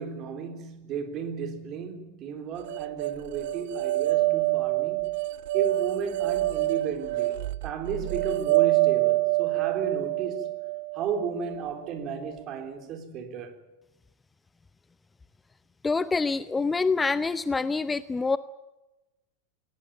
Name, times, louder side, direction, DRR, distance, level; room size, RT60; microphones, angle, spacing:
voice 1, 0.0-5.1 5.5-7.4 7.6-10.5 10.9-13.6, right 6 dB, 35° right, 3.8 m, -34 dB
sound 1, 2.7-11.8, right 18 dB, 50° right, 0.7 m, -26 dB
voice 2, 15.8-18.4, left 4 dB, 10° left, 0.7 m, -26 dB
21.0 x 18.5 x 9.1 m
figure-of-eight pair, 90°, 0 cm